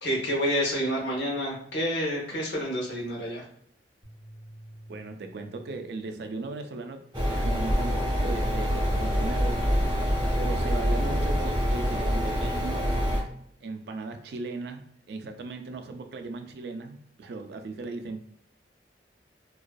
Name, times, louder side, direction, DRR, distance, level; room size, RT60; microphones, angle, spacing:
voice 1, 0.0-3.4, equal, 85° left, -3 dB, 0.7 m, -28 dB
sound 1, 4.0-6.5, right 1 dB, 25° left, 0.5 m, -49 dB
voice 2, 4.9-12.9 13.6-18.2, right 3 dB, 65° right, 6 dB, 0.3 m, -38 dB
sound 2, 7.1-13.2, equal, 25° right, 0.7 m, -26 dB
2.5 x 2.2 x 2.2 m, 0.66 s
head